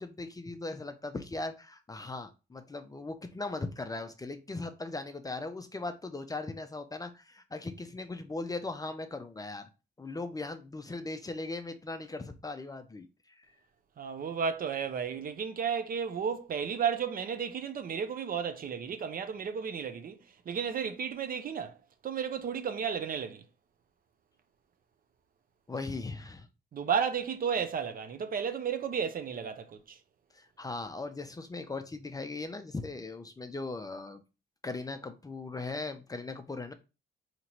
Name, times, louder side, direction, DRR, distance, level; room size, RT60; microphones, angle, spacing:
voice 1, 0.0-9.7 10.0-13.5 25.7-26.5 30.3-34.2 34.6-36.7, left 3 dB, 20° left, 0.5 m, -39 dB
voice 2, 14.0-20.2 20.5-21.7 22.0-23.4 26.7-30.0, right 7 dB, 45° right, 0.6 m, -33 dB
3.9 x 2.9 x 2.9 m
cardioid pair, 90°, 20 cm